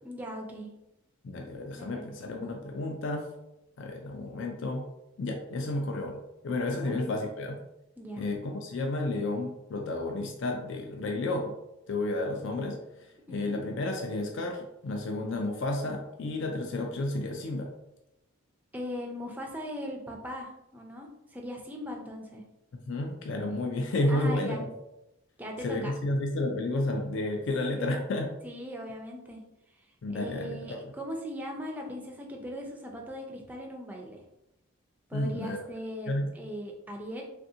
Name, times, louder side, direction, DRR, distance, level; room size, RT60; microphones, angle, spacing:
voice 1, 0.0-0.7 1.8-2.1 6.8-7.0 8.0-8.2 13.3-13.6 18.7-22.4 24.1-24.6 25.4-25.9 27.7-28.0 28.4-29.4 30.1-34.2 35.1-36.1 36.3-37.2, equal, 10° right, 0 dB, 0.4 m, -39 dB
voice 2, 1.2-3.3 3.8-4.8 5.2-6.2 6.4-7.6 8.2-11.5 11.9-17.7 22.9-24.7 25.6-28.3 30.0-30.8 35.1-35.6 36.1-36.3, left 2 dB, 60° left, 2 dB, 0.4 m, -31 dB
3.4 x 2.5 x 2.7 m, 0.88 s
head